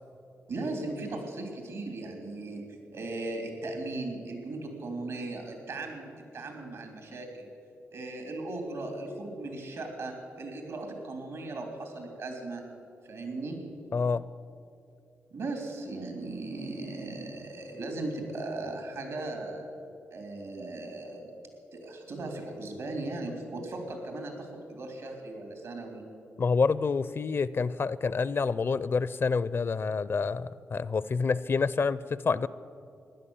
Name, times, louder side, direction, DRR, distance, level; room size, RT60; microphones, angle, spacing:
voice 1, 0.5-7.5 7.9-12.6 13.0-13.6 15.3-19.7 20.1-21.3 21.7-26.1, right 2 dB, 80° right, 3 dB, 3.4 m, -37 dB
voice 2, 13.9-14.2 26.4-32.5, left 4 dB, 50° left, 17 dB, 0.5 m, -28 dB
16.0 x 11.0 x 7.2 m, 2.6 s
cardioid pair, 55°, 5 cm